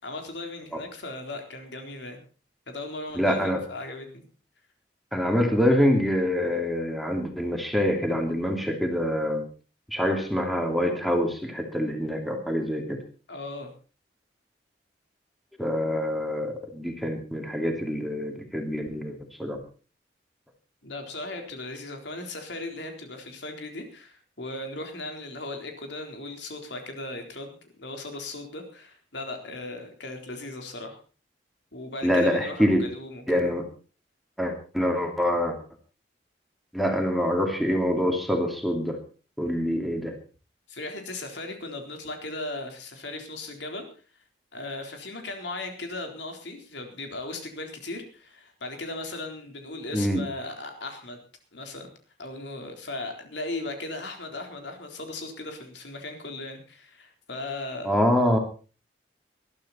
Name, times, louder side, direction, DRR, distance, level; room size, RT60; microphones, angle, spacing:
voice 1, 0.0-2.2 2.7-4.2 13.3-13.7 20.8-31.0 31.7-33.5 40.7-43.9 44.5-51.2 51.5-51.9 52.2-57.9, left 2 dB, 80° left, 4 dB, 4.0 m, -37 dB
voice 2, 3.1-3.6 5.1-9.4 9.9-13.0 15.6-19.6 32.0-32.8 33.3-33.6 34.4-35.6 36.7-39.0 39.4-40.1 49.9-50.2 57.8-58.4, equal, ahead, 3 dB, 2.6 m, -25 dB
20.5 x 12.5 x 4.3 m, 0.36 s
head